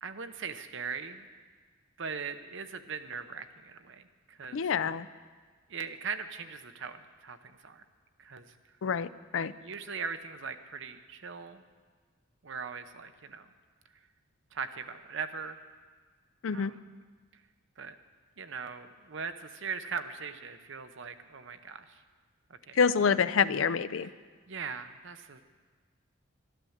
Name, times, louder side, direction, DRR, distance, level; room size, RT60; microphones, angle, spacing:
voice 1, 0.0-1.3 2.0-4.7 5.7-7.8 8.2-8.5 9.3-11.6 12.4-13.5 14.5-15.6 16.5-16.8 17.8-18.0 18.4-22.0 22.5-22.8 23.1-23.2 24.5-25.4, right 5 dB, 60° right, 9 dB, 0.8 m, -40 dB
voice 2, 4.5-5.1 8.8-9.5 16.4-16.7 22.7-24.1, left 6 dB, 70° left, 15 dB, 0.4 m, -27 dB
12.5 x 12.0 x 7.2 m, 1.5 s
head